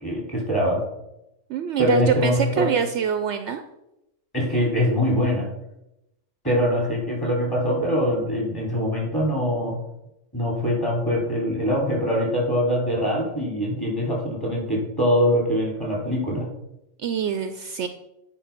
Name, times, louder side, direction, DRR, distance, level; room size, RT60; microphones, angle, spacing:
voice 1, 0.0-0.8 1.8-2.7 4.3-5.5 6.4-9.7 10.3-16.5, equal, 15° left, -3 dB, 3.2 m, -23 dB
voice 2, 1.5-3.6 17.0-17.9, right 7 dB, 65° right, 8 dB, 0.8 m, -25 dB
9.1 x 4.7 x 5.8 m, 0.89 s
omnidirectional pair, 1.3 m